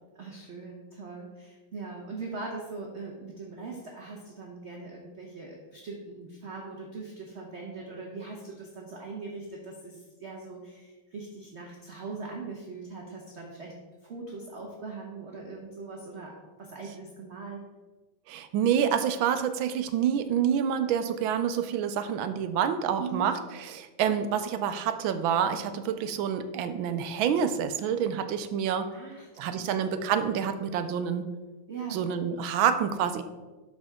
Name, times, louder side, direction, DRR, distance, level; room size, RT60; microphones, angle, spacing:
voice 1, 0.2-13.8 14.0-16.3 16.6-17.6 23.0-23.4 28.9-29.7 31.7-32.0, right 4 dB, 45° right, -1 dB, 1.0 m, -41 dB
voice 2, 18.3-28.9 29.4-31.3 31.9-33.2, right 8 dB, 80° right, 10 dB, 1.4 m, -27 dB
11.5 x 5.2 x 3.6 m, 1.2 s
omnidirectional pair, 2.3 m